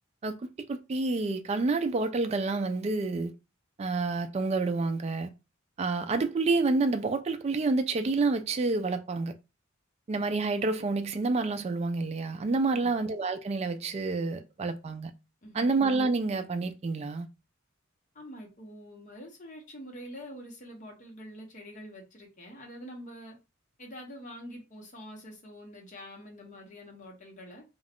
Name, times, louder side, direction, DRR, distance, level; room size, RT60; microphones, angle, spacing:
voice 1, 0.7-3.3 3.8-5.3 5.8-9.3 10.1-15.1 15.5-17.3, right 3 dB, 30° right, 0.3 m, -28 dB
voice 2, 15.4-15.7 18.1-23.4 23.8-27.6, equal, 40° left, 0.9 m, -45 dB
2.4 x 2.3 x 3.4 m
head